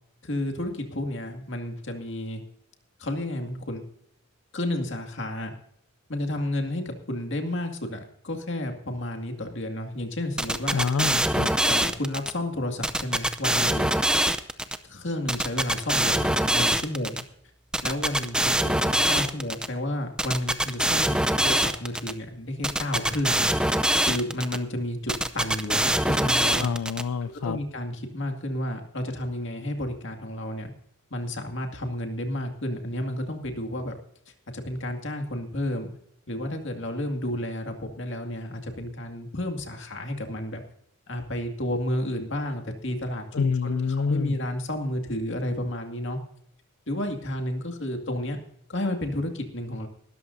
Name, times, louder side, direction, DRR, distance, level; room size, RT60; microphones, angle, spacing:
voice 1, 0.2-2.4 3.0-3.8 4.5-5.5 6.1-10.8 11.6-13.9 14.8-17.2 17.8-26.7 27.2-30.7 31.1-33.9 34.5-35.9 36.3-40.6 41.1-46.2 46.9-48.4 48.7-49.9, left 1 dB, 60° left, 4 dB, 2.3 m, -31 dB
sound 1, 10.4-12.3 12.8-14.8 15.3-17.2 17.7-19.7 20.2-22.1 22.6-24.6 25.1-27.0, right 1 dB, 5° right, 0.5 m, -24 dB
voice 2, 10.7-11.5 26.6-27.6 43.3-44.4, left 5 dB, 85° left, 14 dB, 0.4 m, -27 dB
20.0 x 13.0 x 2.7 m, 0.71 s
head